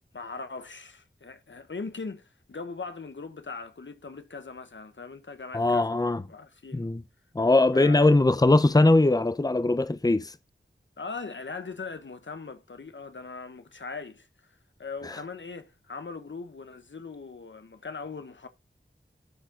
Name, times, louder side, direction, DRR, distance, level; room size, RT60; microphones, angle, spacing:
voice 1, 0.1-6.9 7.7-8.1 11.0-14.3 14.8-18.5, left 4 dB, 70° left, 1.3 m, -40 dB
voice 2, 5.5-6.2 6.7-7.0 7.3-10.3 15.0-15.2, left 2 dB, 20° left, 0.8 m, -21 dB
12.5 x 4.4 x 3.8 m
wide cardioid pair, 45°, 20 cm